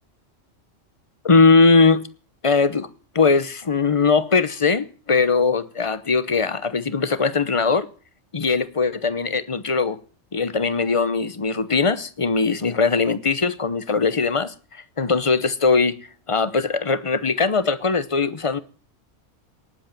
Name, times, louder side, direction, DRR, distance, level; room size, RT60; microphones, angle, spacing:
voice 1, 1.2-2.0 2.4-2.9 3.1-7.9 8.3-10.0 10.3-16.0 16.3-18.6, left 4 dB, 30° left, 0.9 m, -20 dB
18.5 x 8.0 x 8.9 m
omnidirectional pair, 1.2 m